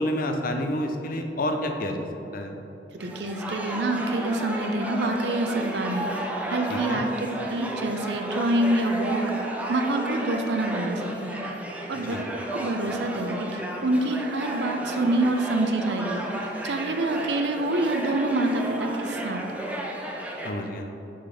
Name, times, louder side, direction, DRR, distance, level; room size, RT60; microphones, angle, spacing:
voice 1, 0.0-2.1 2.3-2.5 6.7-7.0 12.0-12.2 20.4-20.9, left 1 dB, 55° left, 4 dB, 0.6 m, -29 dB
voice 2, 2.9-6.1 6.5-9.2 9.7-11.4 11.9-12.2 12.5-19.4, right 2 dB, 75° right, 5 dB, 0.6 m, -26 dB
sound 1, 3.0-20.5, right 1 dB, 10° right, 0.6 m, -33 dB
6.3 x 4.1 x 5.6 m, 3.0 s
head